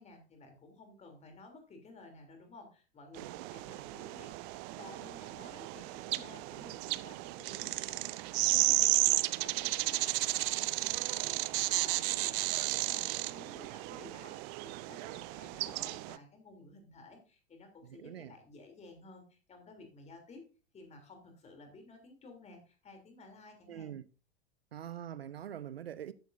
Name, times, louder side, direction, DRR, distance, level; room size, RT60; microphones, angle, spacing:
voice 1, 0.0-20.5 20.7-24.0, left 3 dB, 20° left, 3.2 m, -54 dB
sound 1, 3.2-16.2, right 22 dB, 30° right, 0.5 m, -33 dB
voice 2, 17.8-18.3 23.7-24.0 24.7-26.1, right 10 dB, 70° right, 0.7 m, -44 dB
13.0 x 9.4 x 2.7 m
figure-of-eight pair, 90°, 31 cm